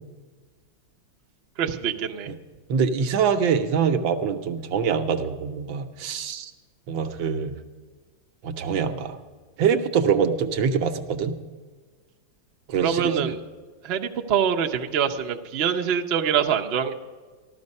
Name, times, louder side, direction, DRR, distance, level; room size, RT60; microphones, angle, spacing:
voice 1, 1.6-2.3 12.8-13.4 13.8-16.9, right 8 dB, 55° right, 3 dB, 0.7 m, -24 dB
voice 2, 2.7-6.5 6.9-7.5 8.4-9.2 9.6-11.3 12.7-13.3, right 6 dB, 80° right, 7 dB, 1.6 m, -24 dB
14.5 x 12.5 x 5.3 m, 1.4 s
omnidirectional pair, 2.1 m